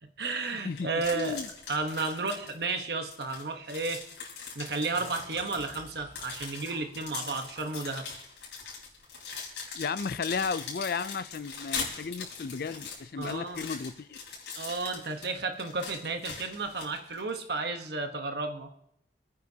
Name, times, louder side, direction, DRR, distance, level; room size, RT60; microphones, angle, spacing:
voice 1, 0.0-1.4 1.7-4.0 4.5-8.1 13.2-13.7 14.5-18.7, right 3 dB, 60° right, 1.2 m, -33 dB
voice 2, 0.6-1.5 9.7-14.2, left 5 dB, 55° left, 0.4 m, -34 dB
sound 1, 0.8-2.7 3.1-17.3, left 5 dB, 80° left, 4.7 m, -41 dB
sound 2, 5.0-10.0, right 1 dB, 30° right, 4.9 m, -52 dB
27.0 x 9.7 x 2.9 m
head